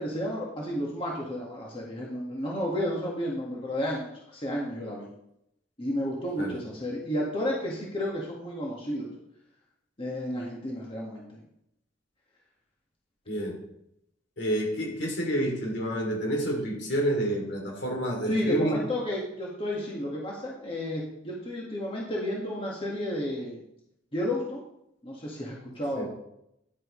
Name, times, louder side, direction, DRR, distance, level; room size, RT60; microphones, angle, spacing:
voice 1, 0.0-5.1 5.8-9.1 10.0-11.4 18.3-23.6 24.1-24.6 25.0-26.1, left 1 dB, 30° left, -3 dB, 1.8 m, -32 dB
voice 2, 13.3-13.6 14.4-18.8 25.9-26.1, equal, 65° left, 0 dB, 2.9 m, -29 dB
10.5 x 9.1 x 3.2 m, 0.78 s
head